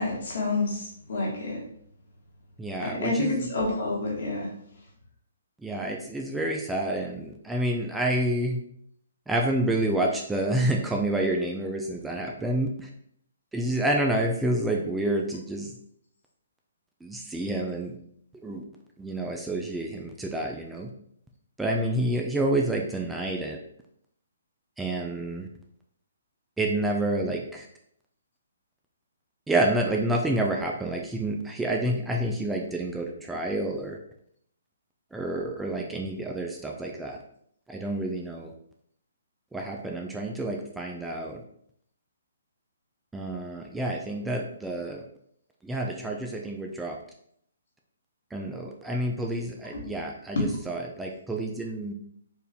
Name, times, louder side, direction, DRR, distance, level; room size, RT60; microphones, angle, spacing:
voice 1, 0.0-1.6 2.8-4.5 49.7-49.8 50.3-50.5, left 2 dB, 65° left, -2 dB, 1.6 m, -28 dB
voice 2, 2.6-3.5 5.6-8.6 9.3-12.9 13.5-15.8 17.0-18.0 18.4-18.6 19.0-20.9 21.6-23.6 24.8-25.5 26.6-27.7 29.5-34.0 35.1-37.2 37.7-38.5 39.5-41.4 43.1-45.1 45.6-47.0 48.3-51.9, right 1 dB, 5° right, 0 dB, 0.4 m, -28 dB
4.5 x 2.6 x 3.5 m, 0.69 s
hypercardioid pair, 145°, 0 cm